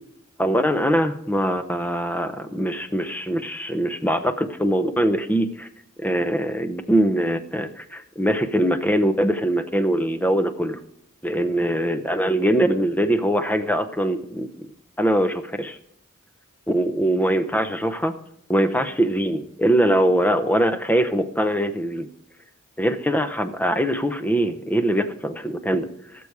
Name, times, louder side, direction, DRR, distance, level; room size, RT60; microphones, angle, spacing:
voice 1, 0.4-5.7 6.0-10.8 11.2-14.7 15.0-15.8 16.7-18.1 18.5-22.1 22.8-25.9, equal, 10° left, 9 dB, 0.7 m, -22 dB
16.5 x 6.9 x 4.8 m, 0.74 s
head